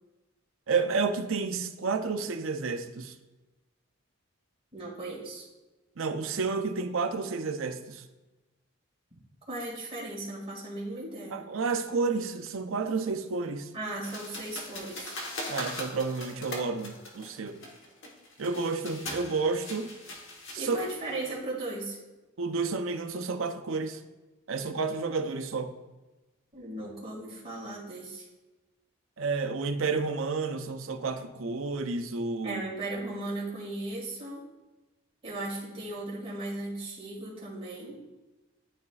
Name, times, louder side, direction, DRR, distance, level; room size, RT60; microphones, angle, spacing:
voice 1, 0.7-3.2 6.0-8.0 11.3-13.7 15.5-17.6 18.4-19.9 20.5-20.8 22.4-24.0 24.5-25.7 29.2-32.6, right 4 dB, 70° right, 0.6 m, -30 dB
voice 2, 4.7-5.5 9.5-11.4 13.7-15.2 20.5-22.0 26.5-28.3 32.4-34.4 35.2-38.0, right 2 dB, 25° right, 2.1 m, -37 dB
sound 1, 14.0-21.4, left 1 dB, 60° left, 1.2 m, -41 dB
12.0 x 4.1 x 2.4 m
head